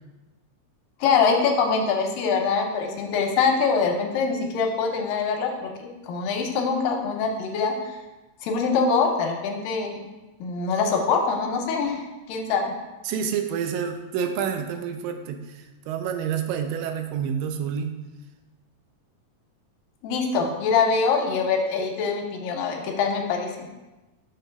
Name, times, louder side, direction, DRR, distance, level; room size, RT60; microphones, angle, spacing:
voice 1, 1.0-7.8 8.4-10.0 10.4-12.0 12.3-12.7 20.0-23.7, left 5 dB, 80° left, 2 dB, 2.3 m, -24 dB
voice 2, 13.0-18.0 20.4-20.5, right 7 dB, 80° right, 6 dB, 2.2 m, -28 dB
6.6 x 3.0 x 5.7 m, 1.1 s
omnidirectional pair, 4.1 m